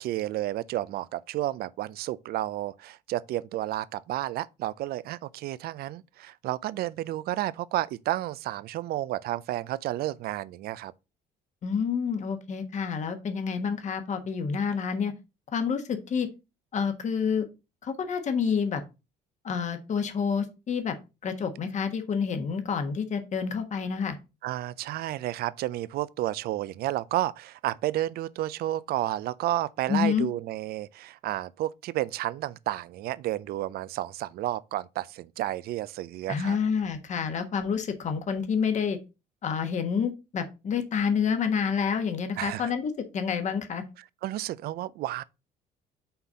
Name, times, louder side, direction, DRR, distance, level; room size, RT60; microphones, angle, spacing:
voice 1, 0.0-10.9 24.4-36.6 42.4-42.6 44.2-45.2, right 14 dB, 65° right, 0.4 m, -31 dB
voice 2, 11.6-15.1 15.5-16.3 16.7-17.5 17.8-18.8 19.4-20.9 21.2-24.2 29.9-30.3 36.3-39.0 39.4-43.8, left 6 dB, 45° left, 1.3 m, -28 dB
5.8 x 4.1 x 5.0 m
cardioid pair, 110°, 17 cm